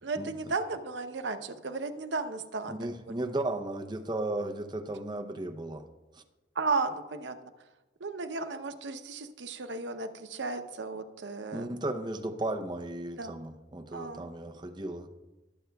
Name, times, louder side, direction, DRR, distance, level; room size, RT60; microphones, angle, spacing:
voice 1, 0.0-2.7 6.5-7.5 8.0-11.8 13.2-13.4 13.9-14.3, right 3 dB, 85° right, 8 dB, 0.8 m, -34 dB
voice 2, 2.7-5.8 6.1-6.2 11.5-15.1, right 2 dB, 25° right, 6 dB, 0.7 m, -35 dB
21.5 x 7.8 x 2.3 m, 1.1 s
head